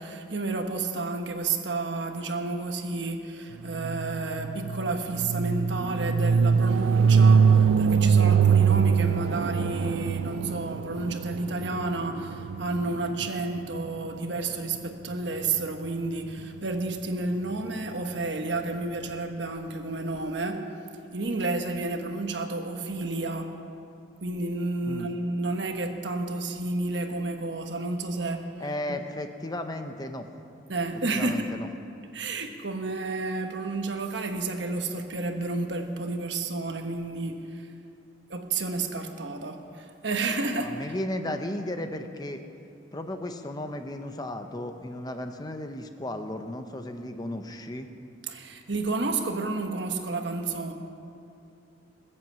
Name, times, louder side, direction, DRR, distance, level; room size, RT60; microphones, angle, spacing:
voice 1, 0.0-20.6 21.1-23.5 24.2-28.4 28.9-29.0 30.7-31.5 32.1-37.7 38.3-40.9 48.2-50.7, right 3 dB, 65° right, 5 dB, 1.3 m, -31 dB
sound 1, 3.7-13.7, right 6 dB, 85° right, 0.4 m, -23 dB
voice 2, 28.6-30.3 31.1-31.7 40.6-42.4 42.9-47.9, left 1 dB, 20° left, 7 dB, 0.7 m, -34 dB
21.0 x 7.8 x 7.5 m, 2.6 s
head